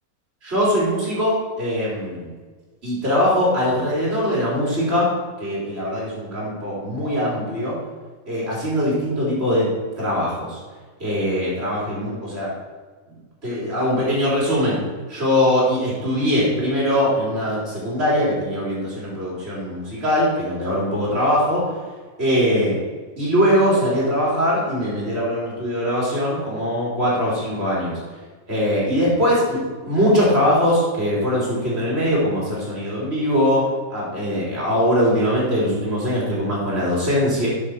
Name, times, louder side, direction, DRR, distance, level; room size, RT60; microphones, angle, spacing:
voice 1, 0.4-2.3 2.8-5.1 5.4-7.8 8.3-9.7 10.0-10.6 11.0-12.5 13.4-14.8 15.1-21.6 22.2-22.7 23.2-28.0 28.5-37.5, equal, 45° right, -7 dB, 3.8 m, -21 dB
7.7 x 6.1 x 6.5 m, 1.4 s
omnidirectional pair, 1.6 m